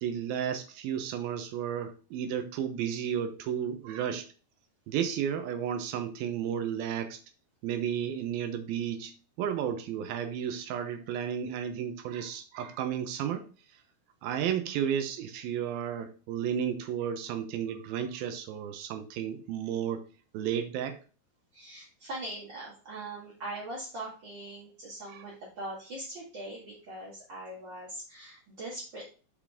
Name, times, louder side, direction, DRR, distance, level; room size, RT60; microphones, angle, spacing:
voice 1, 0.0-4.3 4.9-7.2 7.6-9.1 9.4-13.4 14.2-20.0 20.3-21.0 25.1-25.2, right 9 dB, 75° right, 8 dB, 2.7 m, -33 dB
voice 2, 21.5-29.1, right 1 dB, 40° right, -6 dB, 1.8 m, -41 dB
7.4 x 5.2 x 3.6 m, 0.37 s
omnidirectional pair, 4.4 m